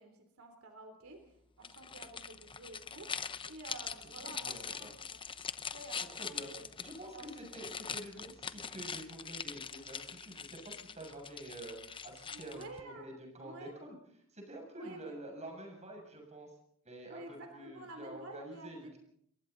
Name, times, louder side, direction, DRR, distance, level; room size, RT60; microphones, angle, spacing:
voice 1, 0.0-5.4 5.7-6.7 7.1-7.3 12.3-13.1 13.4-13.7 14.8-15.2 17.1-19.0, right 2 dB, 85° right, 5 dB, 3.6 m, -50 dB
sound 1, 1.6-12.8, left 6 dB, 25° left, 0.8 m, -43 dB
voice 2, 4.2-4.9 6.2-14.0 14.3-16.5 16.8-17.2 17.5-19.0, right 1 dB, 35° right, 2 dB, 7.2 m, -48 dB
29.0 x 22.5 x 4.1 m, 0.67 s
head